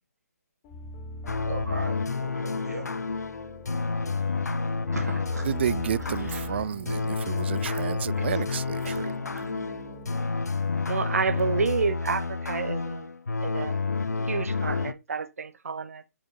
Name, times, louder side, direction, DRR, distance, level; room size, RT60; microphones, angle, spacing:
sound 1, 0.6-10.2, left 1 dB, 20° left, 1.7 m, -43 dB
sound 2, 1.3-14.9, left 4 dB, 80° left, 0.6 m, -30 dB
voice 1, 1.5-2.9 4.9-5.5 6.2-6.4 8.8-9.0, right 2 dB, 85° right, 2.4 m, -37 dB
voice 2, 5.4-9.1, right 8 dB, 40° right, 0.3 m, -31 dB
voice 3, 10.9-13.1 13.4-13.7 14.3-16.1, right 5 dB, 60° right, 0.9 m, -29 dB
6.5 x 6.1 x 3.4 m
figure-of-eight pair, 140°, 9 cm